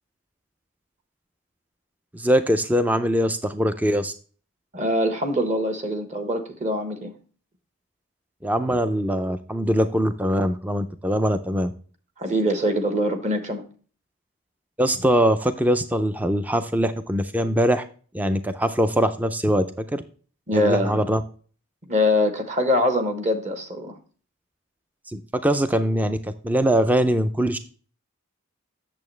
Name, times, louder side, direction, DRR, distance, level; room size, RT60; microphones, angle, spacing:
voice 1, 2.1-4.1 8.4-11.7 14.8-17.9 18.1-20.0 20.5-21.2 25.1-27.6, equal, 5° right, 10 dB, 0.3 m, -22 dB
voice 2, 4.7-7.1 12.2-13.6 20.5-21.1 21.9-24.0, left 1 dB, 35° right, 7 dB, 1.0 m, -23 dB
8.5 x 6.9 x 3.2 m, 0.41 s
head